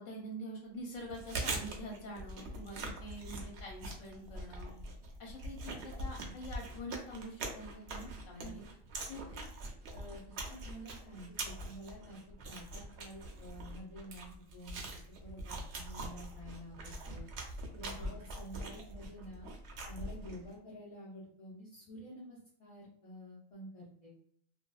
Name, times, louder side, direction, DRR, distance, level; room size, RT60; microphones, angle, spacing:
voice 1, 0.0-4.7 5.2-8.6 17.9-18.1, equal, 75° left, -1 dB, 1.2 m, -46 dB
Chewing mastication, 1.0-20.5, right 2 dB, 65° right, 0.8 m, -43 dB
voice 2, 9.1-9.5 9.9-12.2 12.4-14.8 15.2-17.3 17.7-19.5 19.9-24.1, equal, 35° left, -8 dB, 0.6 m, -50 dB
2.6 x 2.3 x 2.3 m, 0.63 s
omnidirectional pair, 1.4 m